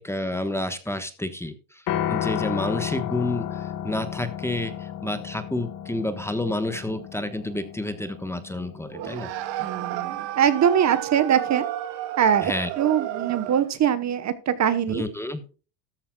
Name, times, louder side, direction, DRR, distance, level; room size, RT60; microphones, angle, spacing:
voice 1, 0.0-1.8 2.1-9.3 12.4-12.7 14.9-15.4, left 1 dB, 5° left, 10 dB, 1.2 m, -29 dB
Piano, 1.9-10.1, left 10 dB, 50° left, 1.2 m, -33 dB
sound 1, 8.9-13.8, right 13 dB, 70° right, 1.9 m, -32 dB
voice 2, 9.6-11.7 12.2-15.0, right 9 dB, 40° right, 12 dB, 1.1 m, -22 dB
13.5 x 13.0 x 2.3 m, 0.34 s
cardioid pair, 130°, 45 cm